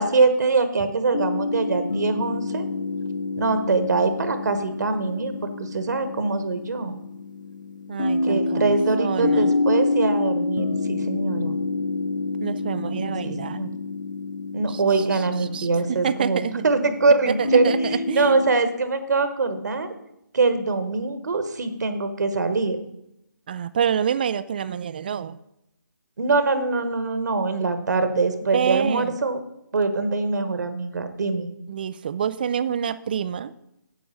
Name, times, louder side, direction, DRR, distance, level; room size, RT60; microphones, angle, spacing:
voice 1, 0.0-2.7 3.4-6.9 8.2-11.6 13.2-13.7 14.5-17.7 18.1-19.9 20.3-22.8 26.2-29.4 29.7-31.5, right 3 dB, 60° right, 9 dB, 1.2 m, -23 dB
sound 1, 1.1-18.6, left 3 dB, 75° left, 0.8 m, -28 dB
voice 2, 7.9-9.5 12.4-13.7 14.7-15.2 15.5-16.6 17.3-18.3 23.5-25.4 28.5-29.2 31.7-33.5, right 8 dB, 30° right, 17 dB, 0.3 m, -27 dB
9.5 x 7.8 x 5.4 m, 0.82 s
figure-of-eight pair, 155°, 11 cm